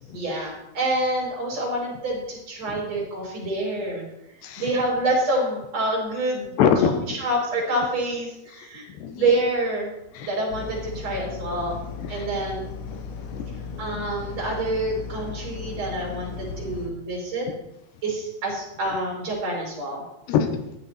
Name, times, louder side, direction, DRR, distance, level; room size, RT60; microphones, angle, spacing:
voice 1, 0.1-4.1 4.6-6.5 7.1-8.8 9.2-9.9 10.2-11.8 12.1-12.6 13.8-17.5 18.0-20.0, right 1 dB, 40° right, -2 dB, 4.8 m, -27 dB
voice 2, 6.6-7.2 8.5-9.4 10.1-10.3 12.0-12.3 12.9-13.0 13.3-13.5 20.3-20.6, left 7 dB, 90° left, 7 dB, 3.3 m, -25 dB
sound 1, 10.5-16.9, left 5 dB, 65° left, 1.9 m, -36 dB
14.0 x 11.5 x 4.3 m, 0.89 s
omnidirectional pair, 4.8 m